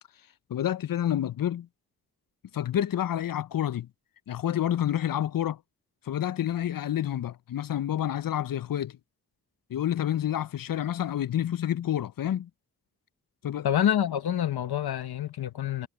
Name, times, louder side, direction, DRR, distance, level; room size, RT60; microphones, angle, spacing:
voice 1, 0.5-1.7 2.5-3.9 4.3-5.6 6.0-9.0 9.7-12.5 13.4-13.7, left 11 dB, 65° left, 0.6 m, -28 dB
voice 2, 13.6-15.9, left 10 dB, 90° left, 1.2 m, -27 dB
cardioid pair, 40°, 37 cm